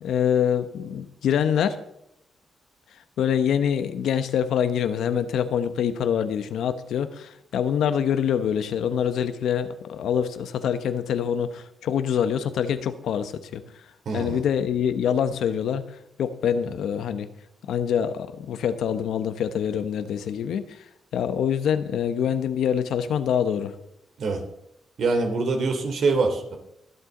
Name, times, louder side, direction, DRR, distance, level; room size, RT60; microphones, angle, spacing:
voice 1, 0.0-1.8 3.2-13.6 14.1-15.8 16.2-17.3 17.7-20.8 21.1-23.7, left 8 dB, 80° left, 11 dB, 1.0 m, -25 dB
voice 2, 14.0-14.4 24.2-24.4 25.0-26.6, right 3 dB, 65° right, 4 dB, 2.9 m, -24 dB
23.5 x 8.3 x 3.9 m, 0.79 s
cardioid pair, 80°, 0 cm